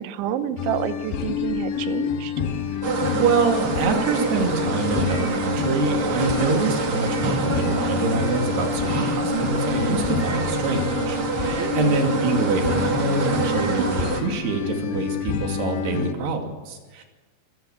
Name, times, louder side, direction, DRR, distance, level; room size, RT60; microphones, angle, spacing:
voice 1, 0.0-2.3 11.6-12.0, right 10 dB, 80° right, 11 dB, 3.3 m, -29 dB
sound 1, 0.6-16.1, left 8 dB, 70° left, 3.5 m, -28 dB
sound 2, 2.8-14.2, right 4 dB, 45° right, 1.9 m, -26 dB
voice 2, 3.1-17.0, right 4 dB, 65° right, 3 dB, 4.5 m, -26 dB
24.0 x 16.5 x 7.3 m, 1.2 s
omnidirectional pair, 5.4 m